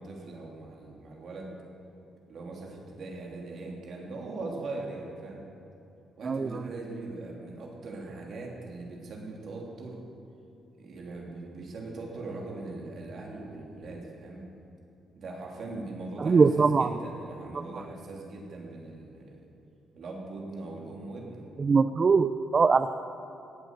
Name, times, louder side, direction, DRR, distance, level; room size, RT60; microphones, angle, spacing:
voice 1, 0.0-1.5 2.3-5.4 6.2-10.0 10.8-14.4 15.2-19.4 20.0-21.5 22.7-22.8, right 2 dB, 60° right, -1 dB, 3.0 m, -40 dB
voice 2, 6.2-6.6 16.2-16.9 21.6-22.9, right 5 dB, 40° right, 11 dB, 0.4 m, -22 dB
17.5 x 8.2 x 6.5 m, 2.8 s
cardioid pair, 90°, 0 cm